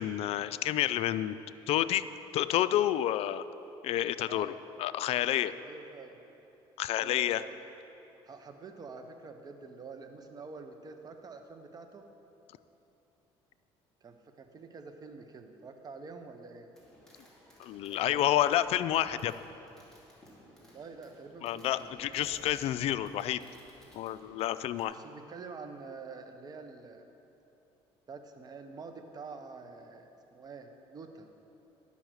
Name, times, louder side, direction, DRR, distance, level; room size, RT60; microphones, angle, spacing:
voice 1, 0.0-1.4 1.7-2.1 2.3-3.4 3.8-4.5 4.8-5.5 6.8-7.4 17.6-19.3 21.4-23.4 23.9-24.9, left 12 dB, 65° left, 13 dB, 0.4 m, -29 dB
voice 2, 5.6-6.2 7.0-7.6 8.2-12.0 14.0-16.7 17.9-18.4 20.6-21.9 24.9-27.0 28.1-31.3, right 4 dB, 35° right, 6 dB, 0.9 m, -47 dB
Fireworks, 16.7-24.8, equal, 5° left, 2.4 m, -58 dB
10.5 x 5.6 x 6.3 m, 2.9 s
cardioid pair, 95°, 11 cm